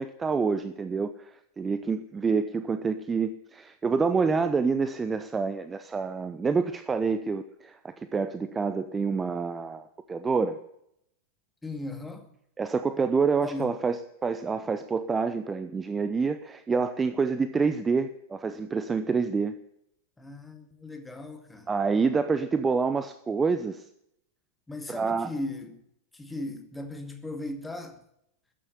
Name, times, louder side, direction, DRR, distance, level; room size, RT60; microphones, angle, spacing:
voice 1, 0.0-10.6 12.6-19.6 21.7-23.8 24.9-25.3, right 5 dB, 15° right, 0.8 m, -27 dB
voice 2, 11.6-12.3 13.4-13.7 20.2-21.7 24.7-25.8 26.1-28.0, left 2 dB, 10° left, 2.2 m, -37 dB
14.0 x 10.0 x 9.7 m
figure-of-eight pair, 90°, 0 cm